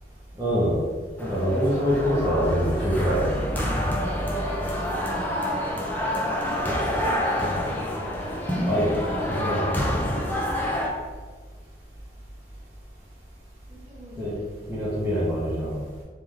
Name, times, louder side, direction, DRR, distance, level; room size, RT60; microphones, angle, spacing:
voice 1, 0.4-0.8 1.2-3.5 8.6-9.0 9.3-9.8 14.2-14.3 14.7-15.8, equal, 15° right, -11 dB, 0.8 m, -24 dB
sound 1, 1.2-10.9, left 1 dB, 10° left, 0.5 m, -28 dB
voice 2, 5.4-7.8 13.7-14.5, left 1 dB, 30° right, -6 dB, 1.1 m, -44 dB
3.6 x 3.3 x 3.2 m, 1.4 s
head